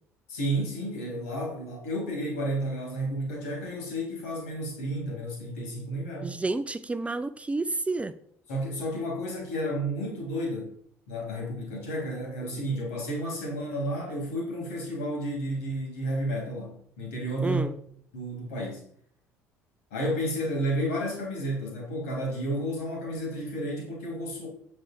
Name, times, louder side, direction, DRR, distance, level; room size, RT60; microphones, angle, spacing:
voice 1, 0.3-6.4 8.5-10.7 11.1-17.6 18.1-18.8 19.9-24.5, equal, 75° left, -1 dB, 3.3 m, -31 dB
voice 2, 6.2-8.1 17.4-17.7, right 3 dB, 15° right, 12 dB, 0.5 m, -30 dB
8.1 x 6.6 x 4.5 m, 0.64 s
figure-of-eight pair, 55°, 8 cm